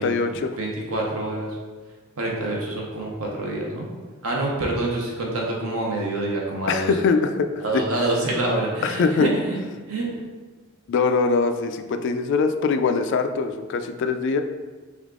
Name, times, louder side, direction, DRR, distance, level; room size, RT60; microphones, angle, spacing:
voice 1, 0.0-0.5 2.4-2.5 6.7-7.5 8.0-8.1 8.8-9.3 10.9-14.4, left 4 dB, 60° left, 7 dB, 0.3 m, -22 dB
voice 2, 0.6-1.5 2.2-3.9 4.2-6.9 7.6-9.6 9.9-10.1, right 2 dB, 85° right, -2 dB, 0.9 m, -26 dB
3.6 x 3.5 x 3.6 m, 1.4 s
head